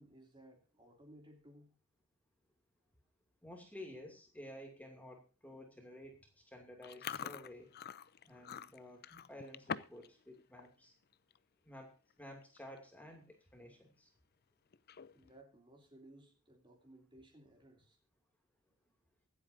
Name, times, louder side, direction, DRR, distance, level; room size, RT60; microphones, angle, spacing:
voice 1, 0.0-1.8 15.1-18.0, right 1 dB, 20° right, 2.8 m, -60 dB
voice 2, 3.4-7.7 8.2-10.9 11.6-14.1, left 1 dB, 5° left, 2.5 m, -53 dB
Chewing mastication, 6.8-10.1 10.4-10.7 11.1-11.4 12.1-12.2 12.4-12.8 13.2-13.3 14.7-15.3, left 7 dB, 45° left, 0.5 m, -45 dB
24.5 x 8.6 x 2.7 m
head